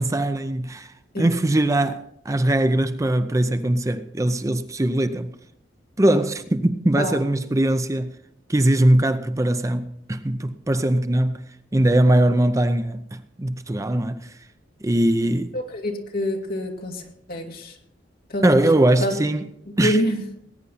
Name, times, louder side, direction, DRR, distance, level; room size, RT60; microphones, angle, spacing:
voice 1, 0.0-5.3 6.0-8.1 8.5-14.4 14.8-15.6 18.4-19.4 19.8-20.0, right 1 dB, 20° right, 0.6 m, -21 dB
voice 2, 15.5-17.7 18.3-18.7 19.0-19.2 19.8-20.2, equal, 55° left, 2.3 m, -26 dB
19.5 x 9.6 x 4.1 m
head